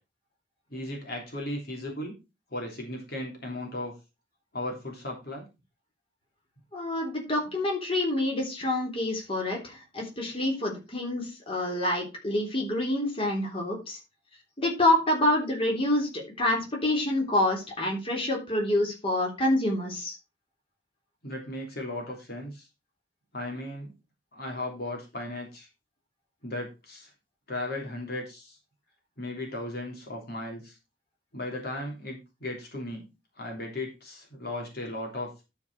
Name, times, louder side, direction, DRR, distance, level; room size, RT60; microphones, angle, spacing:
voice 1, 0.7-2.1 2.5-3.9 4.5-5.4 21.2-22.7 23.3-23.9 24.3-25.7 26.4-27.1 27.5-28.6 29.2-30.8 31.3-33.0 33.4-35.3, left 1 dB, 60° left, 0 dB, 3.1 m, -36 dB
voice 2, 6.7-14.0 14.6-20.1, left 1 dB, 30° left, -1 dB, 3.4 m, -27 dB
12.0 x 4.9 x 4.7 m, 0.27 s
head